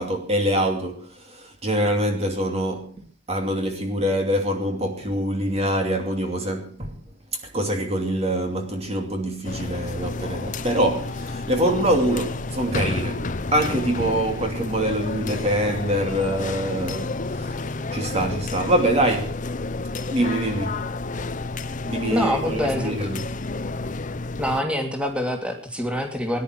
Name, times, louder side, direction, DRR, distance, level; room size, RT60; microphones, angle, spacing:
voice 1, 0.0-3.0 3.3-7.0 7.3-19.4 20.1-20.9 21.9-23.4, right 1 dB, 30° right, 2.5 m, -25 dB
sound 1, 9.4-24.6, left 3 dB, 40° left, 0.8 m, -30 dB
voice 2, 22.1-23.0 24.4-26.4, equal, 5° right, 2.8 m, -25 dB
19.5 x 11.0 x 6.2 m
head